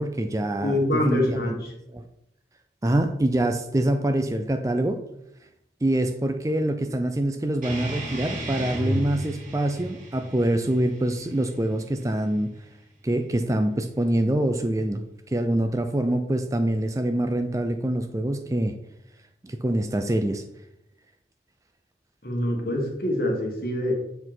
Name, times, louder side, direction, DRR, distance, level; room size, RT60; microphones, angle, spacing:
voice 1, 0.0-1.2 1.9-2.0 2.8-5.0 5.8-12.5 13.0-15.0 15.3-18.7 19.4-20.4, right 1 dB, 20° right, 7 dB, 0.4 m, -25 dB
voice 2, 0.6-1.7 22.2-23.9, left 1 dB, 55° left, 0 dB, 1.7 m, -25 dB
sound 1, 7.6-12.7, equal, 50° right, 2.1 m, -33 dB
7.7 x 4.6 x 4.0 m, 0.79 s
head